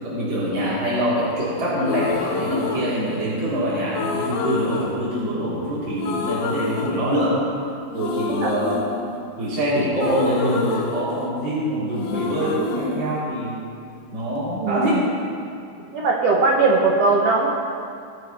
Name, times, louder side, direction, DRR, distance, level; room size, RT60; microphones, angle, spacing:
voice 1, 0.0-7.4 7.9-8.9 9.4-13.6 14.1-15.4, equal, 30° right, -11 dB, 3.8 m, -24 dB
quaint wordless female vocal harmony, 1.8-3.5 3.9-5.7 6.0-7.6 7.9-11.6 11.9-14.0, left 4 dB, 80° left, 2.8 m, -29 dB
voice 2, 14.6-15.0 15.9-17.5, right 3 dB, 80° right, -2 dB, 1.4 m, -19 dB
20.5 x 7.5 x 4.2 m, 2.4 s
omnidirectional pair, 4.5 m